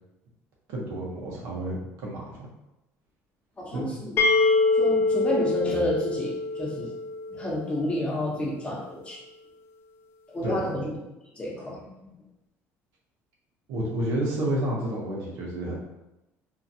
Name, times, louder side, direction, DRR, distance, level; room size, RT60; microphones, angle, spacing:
voice 1, 0.7-2.4 3.7-4.0 10.4-10.7 13.7-15.8, right 1 dB, 90° right, -3 dB, 0.9 m, -30 dB
voice 2, 3.6-4.1 4.7-6.9 7.3-9.2 10.3-10.9 11.3-11.8, left 1 dB, 20° left, -4 dB, 0.8 m, -30 dB
sound 1, 4.2-7.9, left 3 dB, 45° left, 0.4 m, -24 dB
2.8 x 2.5 x 2.7 m, 0.94 s
cardioid pair, 120°, 6 cm